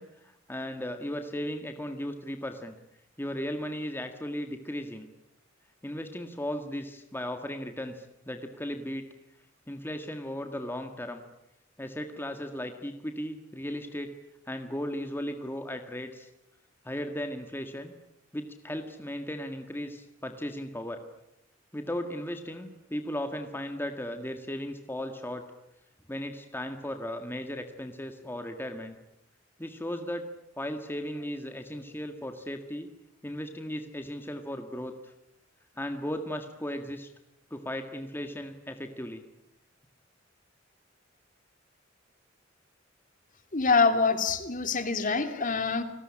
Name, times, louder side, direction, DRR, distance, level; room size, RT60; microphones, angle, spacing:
voice 1, 0.0-2.7 3.2-5.1 5.8-9.1 9.7-11.2 11.8-14.1 14.5-16.3 16.8-17.9 18.3-21.0 21.7-25.4 26.1-29.0 29.6-30.3 30.6-32.9 33.2-35.1 35.8-37.1 37.5-39.2, equal, 10° left, 6 dB, 1.7 m, -36 dB
voice 2, 43.5-45.8, left 4 dB, 45° left, 8 dB, 2.9 m, -25 dB
29.5 x 20.0 x 9.9 m, 0.86 s
head